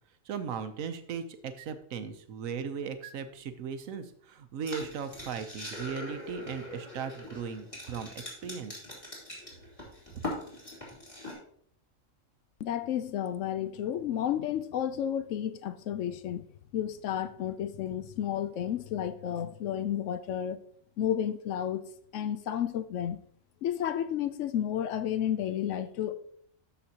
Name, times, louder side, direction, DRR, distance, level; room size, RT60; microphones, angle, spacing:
voice 1, 0.3-8.1 8.4-8.8 10.1-10.2, right 6 dB, 85° right, 1.2 m, -37 dB
sound 1, 4.7-11.3, left 2 dB, 25° left, 2.7 m, -41 dB
voice 2, 12.6-16.4 16.7-20.6 21.0-21.8 22.1-23.2 23.6-26.1, left 10 dB, 70° left, 0.9 m, -32 dB
12.5 x 5.3 x 2.8 m
omnidirectional pair, 1.4 m